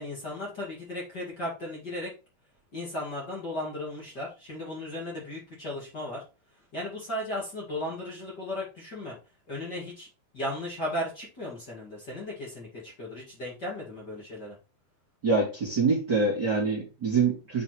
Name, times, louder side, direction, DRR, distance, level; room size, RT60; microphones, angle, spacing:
voice 1, 0.0-2.1 2.7-6.2 6.7-9.2 9.5-10.1 10.3-14.6, left 1 dB, 30° left, -5 dB, 2.3 m, -36 dB
voice 2, 15.2-17.6, right 4 dB, 35° right, -5 dB, 1.9 m, -25 dB
7.9 x 4.2 x 4.5 m, 0.32 s
omnidirectional pair, 4.4 m